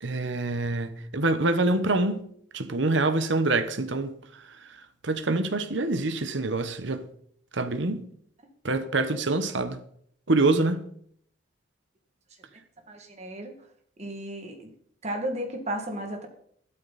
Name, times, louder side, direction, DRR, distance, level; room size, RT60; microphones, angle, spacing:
voice 1, 0.0-2.2 2.5-4.2 5.0-7.0 7.5-8.1 8.6-9.8 10.3-10.9, right 2 dB, 70° right, 1.1 m, -25 dB
voice 2, 12.9-13.5 14.0-14.7 15.0-16.3, right 1 dB, 35° right, 2.2 m, -34 dB
13.5 x 12.5 x 4.2 m
head